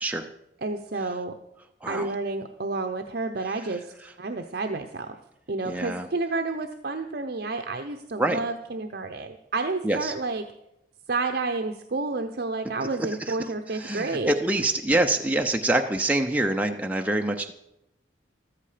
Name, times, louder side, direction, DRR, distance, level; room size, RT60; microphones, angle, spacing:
voice 1, 0.6-1.3 1.9-5.1 5.5-10.4 11.1-14.3, right 3 dB, 55° right, 5 dB, 0.8 m, -30 dB
voice 2, 1.8-2.1 5.7-6.1 8.2-8.4 9.8-10.1 13.1-13.4 13.7-17.5, right 2 dB, 10° right, 3 dB, 0.6 m, -25 dB
14.0 x 13.5 x 5.0 m, 0.86 s
head